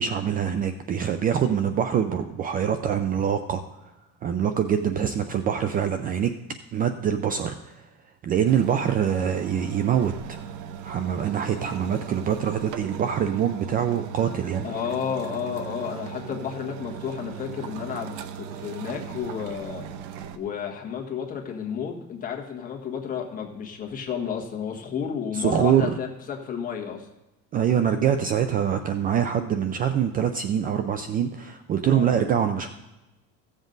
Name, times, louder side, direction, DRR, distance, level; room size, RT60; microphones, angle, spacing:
voice 1, 0.0-3.6 4.2-6.3 6.7-7.5 8.2-10.4 10.8-14.7 25.3-25.9 27.5-32.7, right 8 dB, 30° right, 9 dB, 0.4 m, -24 dB
sound 1, 8.5-20.4, right 8 dB, 85° right, 0.8 m, -38 dB
voice 2, 14.6-19.8 20.3-27.1 31.9-32.2, left 7 dB, 25° left, 1 dB, 1.5 m, -32 dB
15.0 x 7.4 x 3.9 m, 1.0 s
cardioid pair, 160°, 30 cm